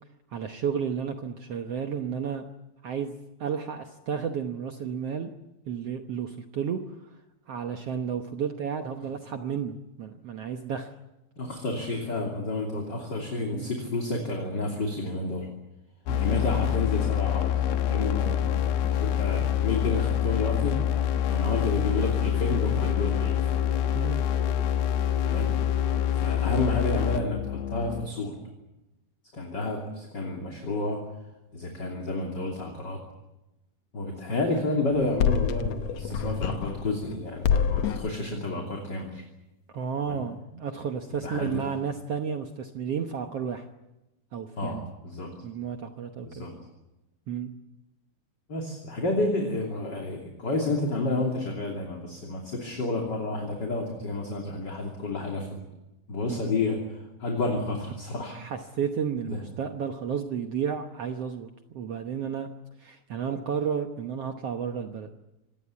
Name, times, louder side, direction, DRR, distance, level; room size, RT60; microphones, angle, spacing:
voice 1, 0.3-2.4 2.8-5.3 5.7-6.8 7.5-10.9 13.5-13.7 16.1-16.4 23.9-24.2 39.7-43.6 44.3-44.8 45.4-46.5 47.3-47.5 56.3-56.5 58.3-62.5 62.8-65.1, right 7 dB, 70° right, 5 dB, 1.5 m, -32 dB
voice 2, 11.4-15.5 16.2-17.5 17.8-20.8 21.3-23.5 25.2-25.5 26.1-28.3 29.3-31.0 31.5-33.0 33.9-39.2 40.1-40.2 41.1-41.7 44.6-45.3 46.2-46.5 48.5-55.6 56.1-58.4 59.3-59.4, left 2 dB, 30° left, 1 dB, 3.2 m, -30 dB
sound 1, 16.1-28.0, left 11 dB, 90° left, 3.2 m, -26 dB
sound 2, 21.8-26.8, right 9 dB, 40° right, 1.9 m, -42 dB
sound 3, 34.9-37.1 37.4-38.1, left 8 dB, 70° left, 1.6 m, -27 dB
26.5 x 18.5 x 8.5 m, 0.98 s
omnidirectional pair, 4.2 m